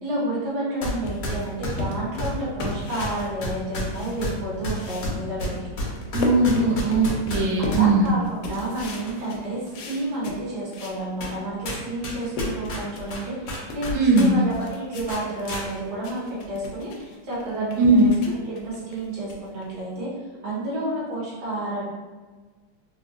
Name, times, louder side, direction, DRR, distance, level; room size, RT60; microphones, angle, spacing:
voice 1, 0.0-5.7 7.6-9.6 9.8-18.1 18.5-20.1 20.4-21.8, right 1 dB, 60° right, -8 dB, 1.5 m, -30 dB
sound 1, 0.8-1.0 1.2-7.9 8.5-9.2 9.7-9.8 10.5-10.6 11.2-11.4 11.6-14.3 14.5-14.7 15.1-15.6, left 1 dB, 60° left, 0.9 m, -31 dB
sound 2, 1.0-4.4 4.7-11.0 11.5-11.6 11.9-20.0, left 2 dB, 85° left, 1.4 m, -36 dB
voice 2, 6.1-8.1 13.9-14.4 17.8-18.1, right 2 dB, 75° right, -1 dB, 1.1 m, -19 dB
3.8 x 2.2 x 2.4 m, 1.3 s
omnidirectional pair, 2.2 m